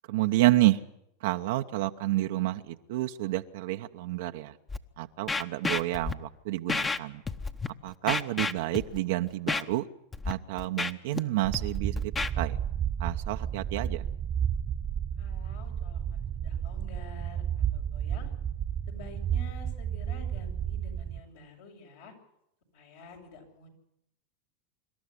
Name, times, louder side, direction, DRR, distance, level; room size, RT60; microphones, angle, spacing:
voice 1, 0.1-0.8 1.2-4.5 5.0-7.2 7.8-9.8 10.3-12.1 12.4-12.6 13.0-14.0, right 16 dB, 70° right, 6 dB, 0.9 m, -29 dB
Scratching (performance technique), 4.7-4.8 5.3-6.1 6.7-7.0 7.3-7.7 8.1-9.0 9.5-9.6 10.1-10.3 10.6-11.2 11.5-12.3, left 4 dB, 20° left, 1.1 m, -30 dB
sound 1, 11.4-21.2, right 9 dB, 30° right, 1.1 m, -32 dB
voice 2, 15.2-18.3 18.9-22.1 22.7-23.7, left 4 dB, 75° left, 1 dB, 7.5 m, -49 dB
26.0 x 12.5 x 9.9 m, 0.79 s
hypercardioid pair, 110°, 0 cm